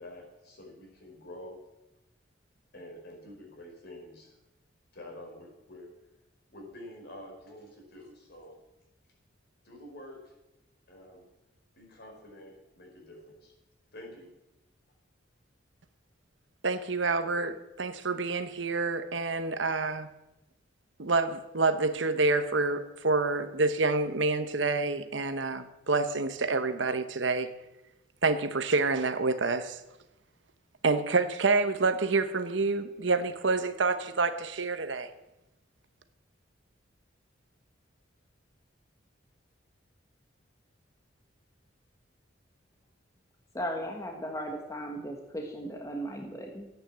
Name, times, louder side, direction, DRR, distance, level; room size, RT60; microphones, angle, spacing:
voice 1, 0.0-1.6 2.7-4.3 4.9-5.9 6.5-8.6 9.6-10.3 10.9-11.3 11.7-13.5 13.9-14.3, left 1 dB, 55° left, 4.8 m, -48 dB
voice 2, 16.6-20.1 21.0-27.5 28.2-29.8 30.8-35.1, right 3 dB, 65° right, 1.0 m, -28 dB
voice 3, 43.5-46.7, equal, 15° left, 1.4 m, -36 dB
13.5 x 9.2 x 7.5 m
head